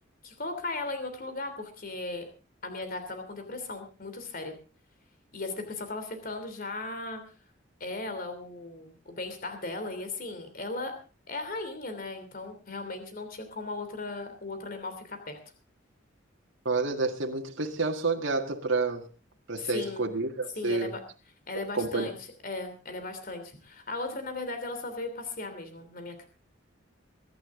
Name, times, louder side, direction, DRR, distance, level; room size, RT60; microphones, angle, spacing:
voice 1, 0.2-2.3 2.6-4.6 5.3-7.3 7.8-11.0 11.3-15.4 19.6-20.1 20.6-21.0 21.5-22.1 22.4-26.3, left 2 dB, 50° left, 3.1 m, -37 dB
voice 2, 16.7-19.1 19.5-20.9 21.7-22.1, right 3 dB, 85° right, 1.9 m, -29 dB
23.0 x 11.5 x 3.8 m
head